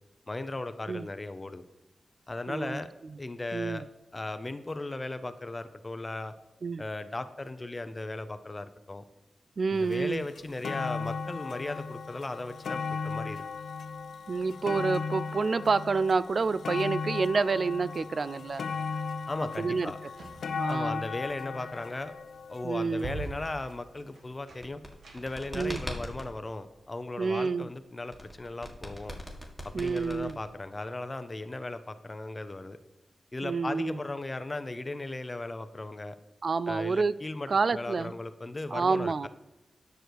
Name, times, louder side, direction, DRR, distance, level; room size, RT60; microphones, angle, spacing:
voice 1, 0.3-1.6 2.3-2.9 3.2-3.8 4.1-6.3 6.8-9.0 9.7-13.4 19.3-20.0 20.7-22.1 22.5-24.8 25.1-29.2 29.6-32.8 33.3-36.1 36.7-39.3, left 2 dB, 30° left, 11 dB, 0.6 m, -37 dB
voice 2, 2.5-2.8 3.5-3.8 6.6-6.8 9.6-10.3 14.3-18.6 19.6-19.9 20.6-21.0 22.6-23.1 25.5-25.8 27.2-27.7 29.7-30.4 33.4-34.0 36.4-37.1 37.5-38.1 38.7-39.3, right 4 dB, 55° right, 18 dB, 0.3 m, -28 dB
sound 1, 9.9-10.0 10.3-23.5 24.3-24.4, left 5 dB, 90° left, 0.4 m, -36 dB
sound 2, 20.0-25.6, right 3 dB, 80° right, 1.3 m, -45 dB
sound 3, 24.5-26.3 28.1-30.7, equal, 15° right, 1.9 m, -40 dB
10.5 x 6.5 x 4.7 m, 1.0 s
wide cardioid pair, 95°, 0 cm